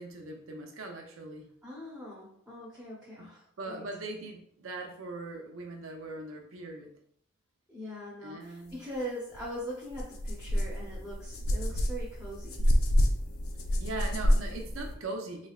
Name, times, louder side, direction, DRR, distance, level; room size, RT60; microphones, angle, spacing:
voice 1, 0.0-1.5 3.2-3.3 3.6-6.9 8.2-8.8 13.8-15.5, right 2 dB, 75° right, 3 dB, 0.6 m, -40 dB
voice 2, 1.6-3.9 7.7-12.6, equal, 5° right, -6 dB, 0.7 m, -41 dB
sound 1, 9.3-9.4 9.9-14.9, equal, 90° left, 0.5 m, -28 dB
3.8 x 3.2 x 2.4 m, 0.67 s
head